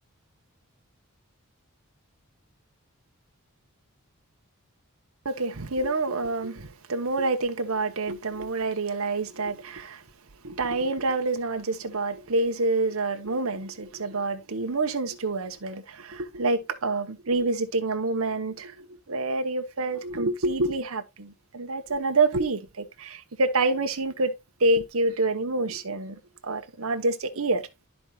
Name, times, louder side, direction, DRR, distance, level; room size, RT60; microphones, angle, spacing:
voice 1, 5.2-10.0 10.4-27.7, right 2 dB, 70° right, 1.0 m, -27 dB
12.5 x 4.5 x 2.3 m
head